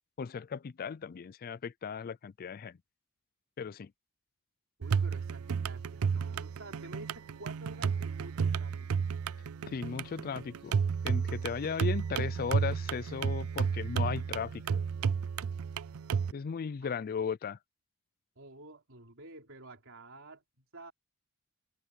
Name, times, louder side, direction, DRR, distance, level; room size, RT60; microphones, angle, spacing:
voice 1, 0.2-2.8 3.6-3.9 9.7-10.7 11.0-14.8 16.3-17.6, left 6 dB, 45° left, 0.4 m, -36 dB
voice 2, 4.8-9.1 16.8-16.9 18.4-20.9, right 2 dB, 65° right, 4.4 m, -50 dB
sound 1, 4.8-16.3, right 6 dB, 80° right, 0.4 m, -32 dB
open air
head